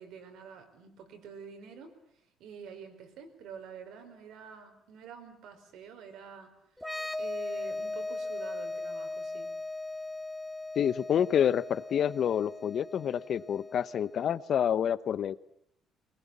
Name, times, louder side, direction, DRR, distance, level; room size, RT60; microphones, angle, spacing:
voice 1, 0.0-1.9 2.4-6.5 7.2-9.5, right 6 dB, 75° right, 6 dB, 4.8 m, -47 dB
sound 1, 6.8-14.3, left 2 dB, ahead, 2.4 m, -38 dB
voice 2, 10.8-15.3, left 9 dB, 50° left, 17 dB, 0.9 m, -28 dB
23.5 x 20.5 x 8.5 m, 0.75 s
cardioid pair, 125°, 0 cm